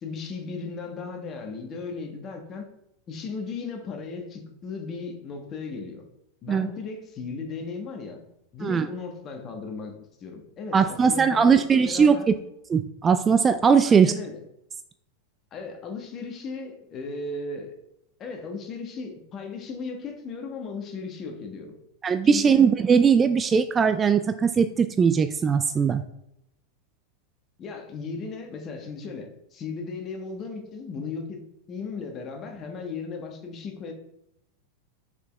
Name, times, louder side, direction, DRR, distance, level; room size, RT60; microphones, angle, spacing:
voice 1, 0.0-2.7 3.1-6.0 6.4-8.2 8.5-12.3 13.8-14.4 15.5-17.7 18.2-21.7 22.2-22.7 27.6-31.4 31.7-33.9, left 4 dB, 30° left, 4 dB, 1.3 m, -36 dB
voice 2, 10.7-12.3 12.7-14.1 22.0-26.0, right 6 dB, 20° right, 10 dB, 0.3 m, -20 dB
6.7 x 4.9 x 3.4 m, 0.81 s
figure-of-eight pair, 90°, 0 cm